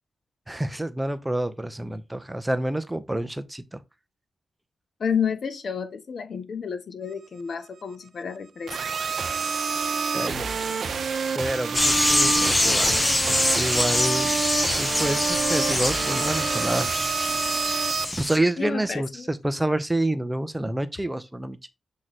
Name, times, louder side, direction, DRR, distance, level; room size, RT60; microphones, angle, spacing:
voice 1, 0.5-3.8 10.1-10.8 11.3-14.3 14.8-16.9 18.2-21.7, right 1 dB, 15° right, 0.8 m, -28 dB
voice 2, 5.0-8.8 18.6-19.3, left 7 dB, 65° left, 0.9 m, -30 dB
sound 1, 8.7-18.0, right 5 dB, 65° right, 0.9 m, -28 dB
sound 2, 11.7-18.4, left 1 dB, 20° left, 1.1 m, -24 dB
7.6 x 3.1 x 4.1 m
cardioid pair, 50°, 0 cm